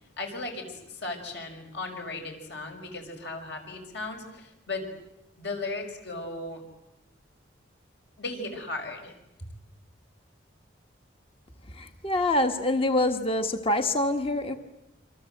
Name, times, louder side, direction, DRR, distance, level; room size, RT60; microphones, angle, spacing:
voice 1, 0.2-4.9 5.4-6.6 8.2-9.1, left 2 dB, 60° left, 3 dB, 6.2 m, -36 dB
voice 2, 11.7-14.6, left 1 dB, 30° left, 7 dB, 1.5 m, -25 dB
27.0 x 26.5 x 7.9 m, 0.93 s
head